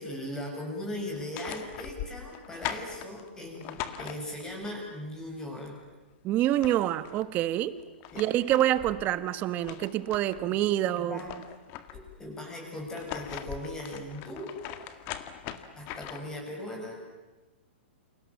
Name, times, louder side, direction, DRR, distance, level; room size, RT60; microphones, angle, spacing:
voice 1, 0.0-5.8 8.1-8.2 10.4-11.3 11.9-14.5 15.8-17.0, left 1 dB, 10° left, 1 dB, 7.7 m, -39 dB
sound 1, 1.1-4.6 6.1-6.2 6.4-7.3 7.8-10.4 10.8-12.2 12.8-16.4, left 11 dB, 30° left, 2.0 m, -41 dB
voice 2, 6.2-7.7 8.2-11.2, right 13 dB, 25° right, 14 dB, 1.3 m, -26 dB
29.5 x 27.5 x 7.4 m, 1.2 s
hypercardioid pair, 150°, 6 cm